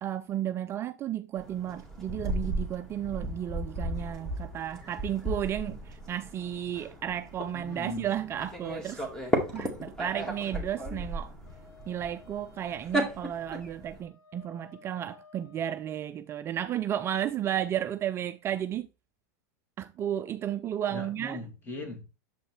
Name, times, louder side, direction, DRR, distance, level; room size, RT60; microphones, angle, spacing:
voice 1, 0.0-9.1 9.5-11.3 11.9-18.9 19.8-21.4, right 10 dB, 25° right, 0.4 m, -33 dB
sound 1, 1.4-14.0, right 1 dB, 5° left, 1.8 m, -35 dB
voice 2, 7.5-8.1 20.9-22.0, left 2 dB, 20° left, 2.3 m, -39 dB
Wind instrument woodwind instrument, 11.4-15.9, left 5 dB, 70° left, 3.3 m, -56 dB
7.4 x 5.0 x 3.1 m
supercardioid pair, 130°, 9 cm